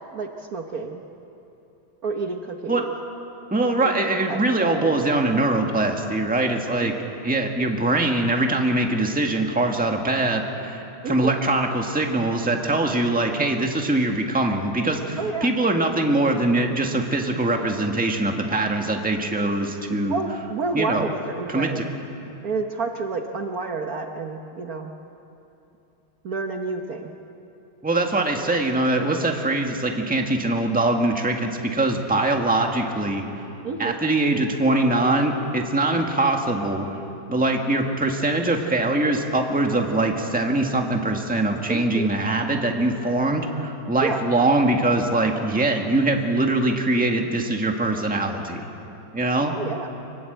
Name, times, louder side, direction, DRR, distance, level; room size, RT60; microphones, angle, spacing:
voice 1, 0.1-1.0 2.0-2.9 3.8-4.9 6.8-7.1 11.0-11.3 15.2-15.5 20.1-21.8 22.4-24.9 26.2-27.1 33.6-34.0 41.7-42.1 44.0-44.2 49.5-49.9, right 4 dB, 55° right, 4 dB, 1.5 m, -29 dB
voice 2, 3.5-6.9 7.2-20.2 20.7-21.1 21.5-21.8 27.8-33.2 33.8-36.9 37.3-48.7 49.1-49.5, right 2 dB, 5° right, 2 dB, 1.5 m, -22 dB
25.5 x 19.5 x 8.0 m, 2.9 s
omnidirectional pair, 2.1 m